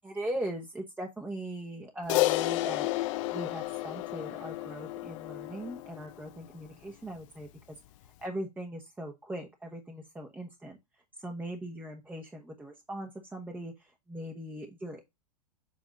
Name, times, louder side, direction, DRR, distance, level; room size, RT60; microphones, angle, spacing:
voice 1, 0.0-2.9 3.3-7.8 8.0-10.8 11.2-15.0, right 1 dB, 10° right, 3 dB, 1.2 m, -40 dB
Crash cymbal, 2.1-6.7, left 18 dB, 50° left, 0.7 m, -31 dB
7.6 x 3.5 x 5.2 m, 0.21 s
hypercardioid pair, 120°, 20 cm